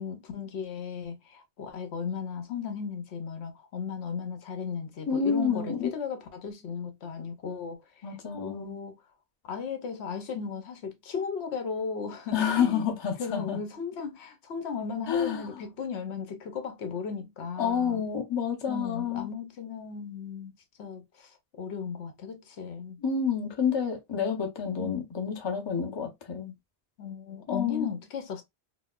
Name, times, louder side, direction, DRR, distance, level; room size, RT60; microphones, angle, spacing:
voice 1, 0.0-9.0 9.4-12.8 13.2-18.0 18.7-20.5 20.8-23.0 24.8-25.0 27.0-28.4, left 6 dB, 75° left, 0.9 m, -36 dB
voice 2, 5.1-5.9 8.0-8.8 12.3-13.6 15.1-15.4 17.6-19.3 23.0-26.5 27.5-27.9, left 7 dB, 30° left, 0.6 m, -29 dB
4.0 x 2.1 x 2.3 m
omnidirectional pair, 1.1 m